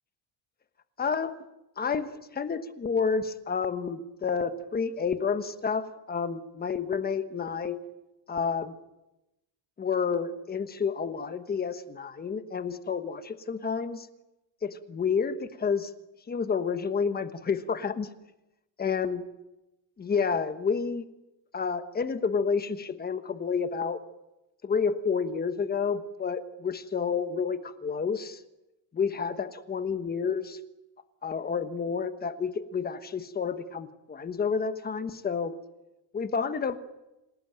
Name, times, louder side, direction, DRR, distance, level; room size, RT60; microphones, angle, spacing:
voice 1, 1.0-1.5 1.8-7.8 8.3-8.7 9.8-14.1 14.6-15.9 16.3-18.1 18.8-19.2 20.0-21.0 21.5-24.0 24.6-28.4 28.9-30.6 31.2-35.6 36.1-36.8, left 5 dB, 20° left, 10 dB, 1.2 m, -30 dB
27.5 x 18.0 x 9.1 m, 0.97 s
cardioid pair, 180°, 46 cm